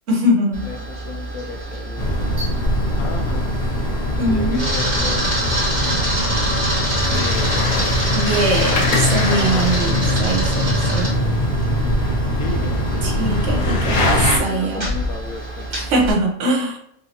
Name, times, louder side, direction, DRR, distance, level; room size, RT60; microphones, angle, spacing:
voice 1, 0.1-0.7 4.2-4.6 8.1-11.2 13.0-14.0 14.4-14.9 15.7-16.8, right 1 dB, 55° right, 0 dB, 1.2 m, -22 dB
Camera, 0.5-16.1, right 1 dB, 30° right, 1.4 m, -27 dB
voice 2, 0.6-2.2 3.0-3.5 4.2-5.3 5.8-7.8 9.3-9.7 12.4-12.8 13.5-15.7, left 4 dB, 70° left, 3 dB, 1.0 m, -34 dB
sound 1, 2.0-14.4, left 1 dB, 90° left, 1.4 m, -21 dB
4.1 x 2.8 x 2.7 m, 0.76 s
omnidirectional pair, 1.6 m